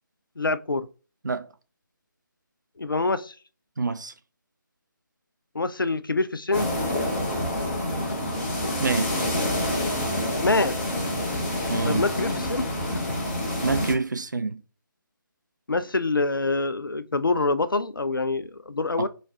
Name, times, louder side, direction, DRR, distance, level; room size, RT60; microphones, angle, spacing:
voice 1, 0.4-0.9 2.8-3.3 5.5-6.7 10.4-10.8 11.9-12.6 12.9-13.2 15.7-19.1, left 3 dB, 80° left, 0.4 m, -25 dB
voice 2, 3.8-4.1 8.8-9.1 11.7-12.0 13.6-14.6 19.0-19.1, right 3 dB, 60° right, 0.5 m, -26 dB
sound 1, 6.5-13.9, left 1 dB, 25° left, 1.1 m, -27 dB
3.2 x 2.3 x 3.9 m
figure-of-eight pair, 150°, 11 cm